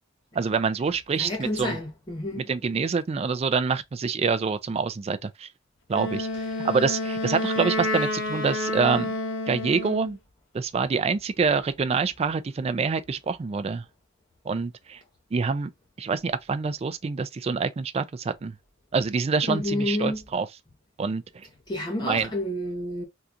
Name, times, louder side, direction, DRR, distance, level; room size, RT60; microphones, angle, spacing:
voice 1, 0.3-1.8 2.3-5.5 5.9-6.3 6.6-9.1 9.5-10.2 10.5-13.8 14.5-15.0 15.3-15.7 16.0-18.6 18.9-20.5 21.0-21.2 22.0-22.3, right 5 dB, 30° right, 0.3 m, -26 dB
voice 2, 1.2-2.4 19.5-20.2 21.7-23.0, left 1 dB, 20° left, 0.7 m, -29 dB
Wind instrument woodwind instrument, 5.9-10.1, left 1 dB, 70° left, 0.7 m, -29 dB
3.7 x 2.3 x 2.7 m
head